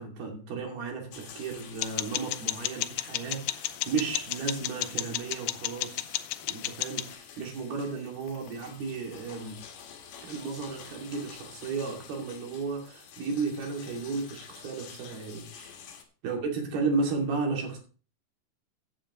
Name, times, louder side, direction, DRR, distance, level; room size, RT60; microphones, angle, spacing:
voice 1, 0.0-9.6 10.2-15.7 16.2-17.8, right 4 dB, 65° right, 1 dB, 4.2 m, -34 dB
sound 1, 1.1-16.0, left 7 dB, 65° left, 3.3 m, -49 dB
sound 2, 1.8-7.1, left 15 dB, 80° left, 2.3 m, -33 dB
15.5 x 8.6 x 3.0 m, 0.37 s
omnidirectional pair, 5.1 m